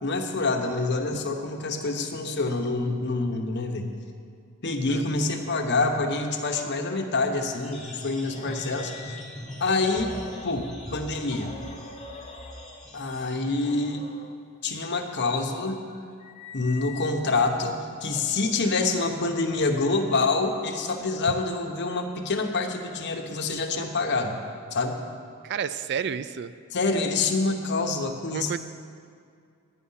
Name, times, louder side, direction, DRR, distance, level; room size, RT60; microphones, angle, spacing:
voice 1, 0.0-3.9 4.6-9.1 9.6-10.1 10.4-11.5 12.9-14.1 14.6-15.9 16.5-24.4 24.7-25.0 26.7-28.6, left 3 dB, 55° left, 3 dB, 1.1 m, -26 dB
sound 1, 7.6-13.9, left 1 dB, ahead, 1.8 m, -41 dB
sound 2, 8.3-12.9 13.6-14.4 15.1-17.5 18.0-20.4, left 4 dB, 30° left, 0.7 m, -45 dB
voice 2, 25.4-26.5 28.3-28.6, right 7 dB, 50° right, 13 dB, 0.4 m, -30 dB
11.0 x 10.0 x 5.6 m, 2.3 s
head